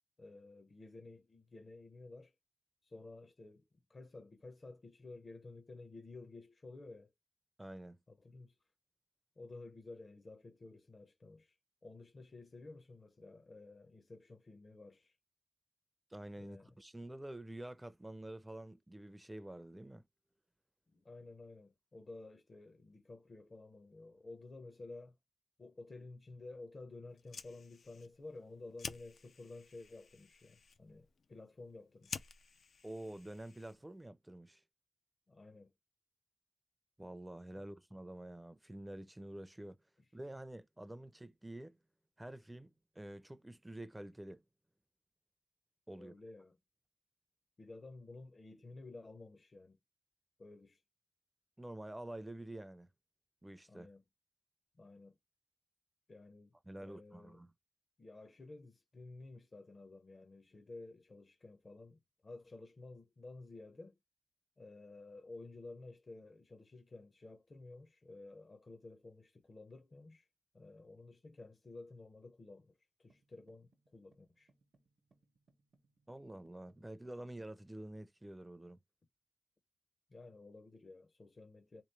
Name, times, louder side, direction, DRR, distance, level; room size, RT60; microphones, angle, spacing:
voice 1, 0.2-2.3 2.8-7.1 8.1-8.6 9.4-11.6 11.8-15.2 16.4-16.8 20.9-25.2 25.6-32.3 35.3-35.7 37.6-37.7 45.9-46.6 47.6-49.8 50.4-50.8 53.7-54.0 54.7-55.2 56.1-57.4 58.0-64.0 64.6-70.3 70.5-74.5 80.1-81.8, left 3 dB, 45° left, 0.6 m, -53 dB
voice 2, 7.6-8.0 16.1-20.1 32.8-34.6 37.0-39.8 40.1-41.8 42.2-44.4 45.9-46.1 51.6-52.9 53.4-53.9 56.7-57.5 76.1-78.8, right 1 dB, 15° right, 0.4 m, -48 dB
Fire, 27.1-34.0, left 5 dB, 90° left, 0.3 m, -51 dB
sound 1, 73.1-77.3, right 3 dB, 80° right, 0.7 m, -74 dB
3.4 x 3.0 x 3.2 m
wide cardioid pair, 110°, 0 cm